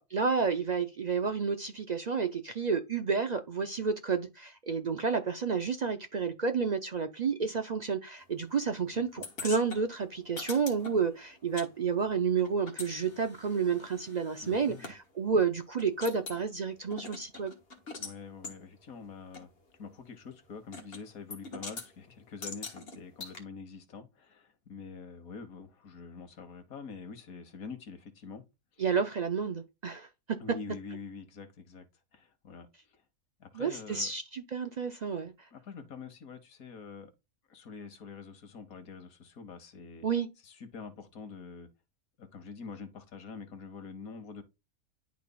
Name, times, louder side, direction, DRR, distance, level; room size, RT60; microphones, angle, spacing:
voice 1, 0.0-17.5 28.8-30.1 33.5-35.3 40.0-40.3, right 5 dB, 55° right, 0.4 m, -30 dB
voice 2, 8.8-9.2 14.4-14.9 17.9-19.5 19.8-28.4 28.7-28.9 30.4-31.9 32.1-33.0 33.4-34.1 35.5-37.1 37.5-40.1 40.4-41.7 42.2-44.4, left 5 dB, 90° left, 1.7 m, -46 dB
sound 1, 9.2-11.7 11.9-15.0 15.4-15.5 15.8-16.4 16.9-18.2 18.4-18.6 19.3-19.4 20.7-21.0 21.3-21.9 22.4-23.4, left 3 dB, 45° left, 1.5 m, -43 dB
11.0 x 4.0 x 2.3 m
omnidirectional pair, 1.5 m